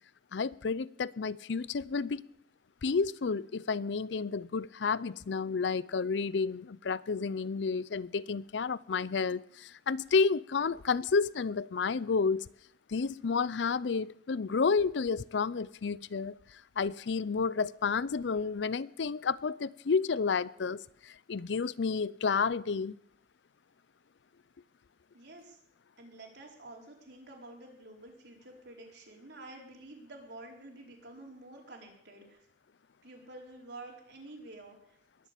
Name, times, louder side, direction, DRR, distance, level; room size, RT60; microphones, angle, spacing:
voice 1, 0.3-2.3 2.8-12.4 12.9-16.4 16.8-22.9, left 5 dB, 80° left, 0.5 m, -31 dB
voice 2, 25.1-25.6 26.0-32.4 33.0-34.8, right 2 dB, 65° right, 4.5 m, -49 dB
21.5 x 7.3 x 8.4 m
head